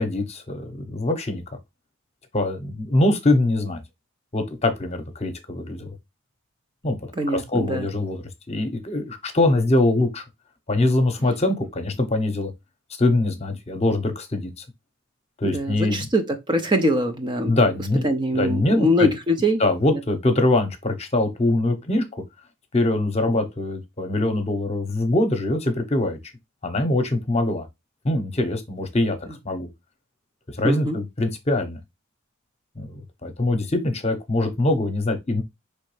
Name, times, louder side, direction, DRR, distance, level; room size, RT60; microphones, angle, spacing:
voice 1, 0.0-1.4 2.3-3.8 4.3-5.9 6.8-7.0 7.3-8.2 8.5-10.2 10.7-12.5 13.0-14.6 15.4-16.0 17.5-18.1 18.3-19.1 19.6-22.0 22.7-26.2 26.6-27.7 28.0-29.2 29.4-29.7 30.6-31.8 32.8-35.4, left 2 dB, 30° left, 0.9 m, -23 dB
voice 2, 7.2-7.9 15.4-17.6 18.0-19.6 30.6-31.0, equal, 20° right, 0.6 m, -23 dB
5.0 x 3.2 x 3.2 m
head